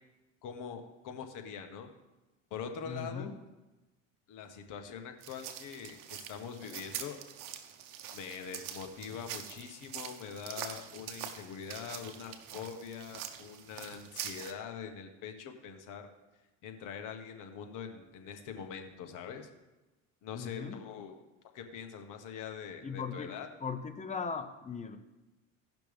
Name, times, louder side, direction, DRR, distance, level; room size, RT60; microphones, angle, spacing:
voice 1, 0.4-1.9 2.5-3.3 4.3-7.2 8.1-16.1 16.6-19.5 20.2-21.2 21.5-23.5, left 7 dB, 50° left, 5 dB, 1.5 m, -43 dB
voice 2, 2.9-3.3 20.3-20.8 22.8-23.3 23.6-25.0, left 5 dB, 20° left, 8 dB, 0.9 m, -38 dB
sound 1, 5.2-14.5, right 9 dB, 55° right, 1.1 m, -44 dB
17.0 x 5.9 x 3.5 m, 1.1 s
supercardioid pair, 100°, 39 cm